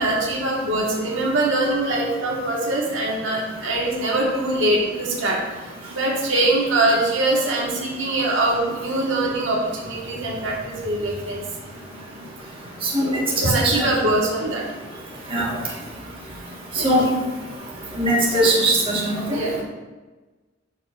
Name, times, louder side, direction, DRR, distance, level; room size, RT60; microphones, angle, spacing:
voice 1, 0.0-5.4 5.9-11.4 13.0-14.6 15.8-15.9 16.8-17.1 19.3-19.6, right 2 dB, 80° right, -3 dB, 1.7 m, -23 dB
voice 2, 18.0-19.4, right 1 dB, 30° right, -5 dB, 1.6 m, -19 dB
11.5 x 5.4 x 2.6 m, 1.2 s
head